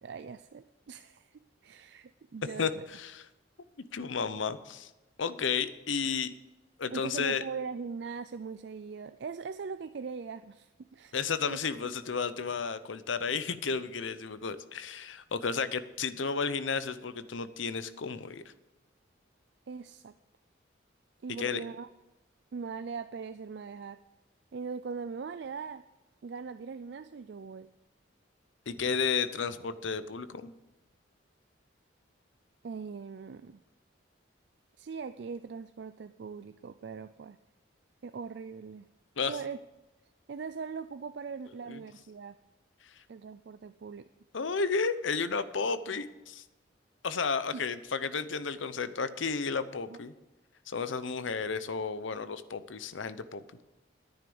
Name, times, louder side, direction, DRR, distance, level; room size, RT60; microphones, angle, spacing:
voice 1, 0.0-2.8 6.9-11.2 11.5-11.9 19.7-20.1 21.2-21.9 22.5-24.0 24.5-25.8 26.2-27.7 32.6-33.6 34.8-37.4 38.0-38.9 39.3-39.6 40.3-42.3 43.1-44.0 49.9-50.0, right 5 dB, 60° right, 11 dB, 0.4 m, -41 dB
voice 2, 2.6-3.3 3.9-4.9 5.2-6.3 6.8-7.5 11.1-18.5 21.4-21.6 28.7-30.5 39.2-39.4 41.7-41.8 44.3-46.4 47.0-50.1 50.7-53.4, left 5 dB, 80° left, 13 dB, 0.7 m, -32 dB
10.5 x 9.6 x 7.0 m, 1.1 s
head